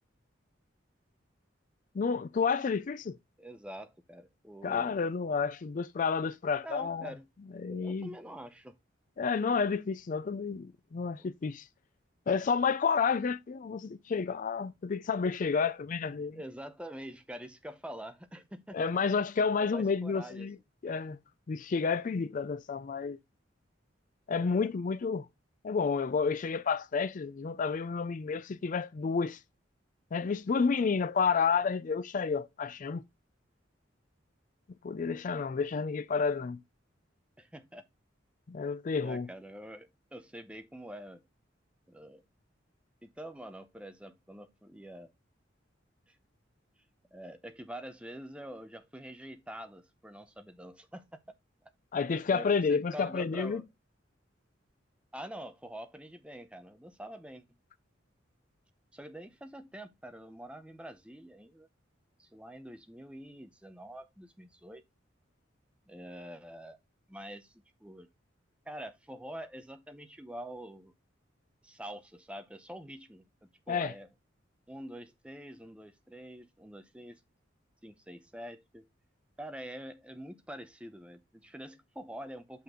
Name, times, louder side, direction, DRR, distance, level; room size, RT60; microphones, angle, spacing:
voice 1, 1.9-3.2 4.6-7.1 7.6-8.1 9.2-11.6 12.3-16.4 18.7-20.6 20.8-21.2 21.5-23.2 24.3-25.3 25.6-29.4 30.1-33.0 34.8-36.6 38.5-39.3 51.9-53.6 73.7-73.9, left 5 dB, 45° left, 0.4 m, -30 dB
voice 2, 3.4-5.0 6.6-8.7 11.2-11.3 16.1-18.8 19.6-20.5 24.3-24.7 37.4-37.9 39.0-41.2 41.9-42.2 43.0-45.1 46.1-46.2 47.1-51.2 51.6-51.7 52.3-53.7 55.1-57.4 58.9-61.7 62.2-64.8 65.9-66.8 67.1-68.1 68.7-70.9 71.6-74.1 74.7-77.2 77.8-78.9 79.4-82.6, right 1 dB, 5° right, 0.7 m, -46 dB
5.8 x 5.7 x 3.6 m
head